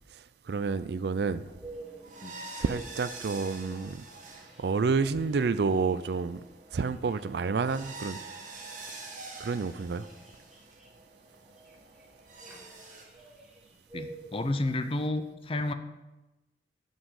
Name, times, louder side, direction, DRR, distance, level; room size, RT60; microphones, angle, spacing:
voice 1, 0.1-1.5 2.5-4.1 4.6-6.4 6.7-8.2 9.4-10.1, right 4 dB, 60° right, 0.4 m, -29 dB
sound 1, 1.4-13.0, right 3 dB, 45° right, 1.6 m, -47 dB
sound 2, 1.6-14.5, right 3 dB, 5° right, 1.4 m, -50 dB
voice 2, 13.9-15.7, left 2 dB, 30° left, 0.6 m, -31 dB
7.3 x 6.1 x 6.5 m
head